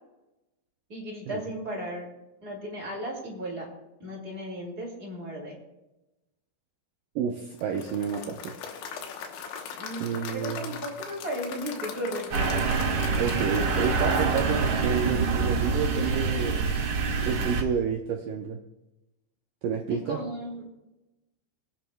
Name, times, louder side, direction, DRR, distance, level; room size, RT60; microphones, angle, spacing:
voice 1, 0.9-2.1 2.4-3.7 4.0-5.6 9.8-12.7 19.9-20.7, right 1 dB, 25° right, -3 dB, 2.4 m, -35 dB
voice 2, 7.2-8.5 10.0-10.8 13.2-16.7 17.2-18.6 19.6-20.2, right 7 dB, 85° right, 1 dB, 1.9 m, -30 dB
Applause / Crowd, 7.6-15.8, left 7 dB, 80° left, 3.3 m, -40 dB
sound 1, 12.3-17.6, right 4 dB, 60° right, 1.7 m, -26 dB
23.5 x 8.9 x 2.3 m, 0.98 s
omnidirectional pair, 5.1 m